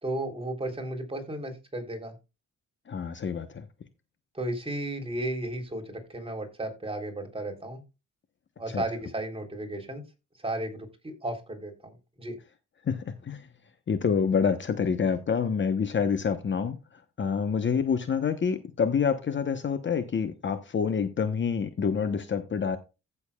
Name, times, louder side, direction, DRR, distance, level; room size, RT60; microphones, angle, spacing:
voice 1, 0.0-2.1 4.3-7.8 8.6-10.0 10.4-11.9 12.2-12.4, right 1 dB, 20° right, 3.5 m, -34 dB
voice 2, 2.9-3.6 8.7-8.8 12.8-13.5 13.9-22.8, left 6 dB, 40° left, 1.0 m, -27 dB
15.5 x 7.0 x 2.3 m
cardioid pair, 105°, 30 cm